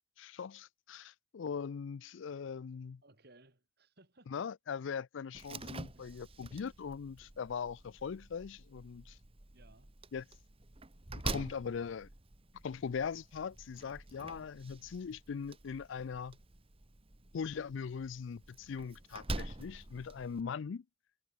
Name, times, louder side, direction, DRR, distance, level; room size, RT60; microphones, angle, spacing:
voice 1, 0.2-3.0 4.3-9.2 10.1-10.2 11.1-12.1 12.6-16.4 17.3-20.8, left 6 dB, 65° left, 0.4 m, -40 dB
voice 2, 3.0-4.4 5.9-6.2 9.5-9.9, right 2 dB, 50° right, 3.7 m, -62 dB
Slam, 5.3-20.4, right 2 dB, 30° right, 1.4 m, -46 dB
head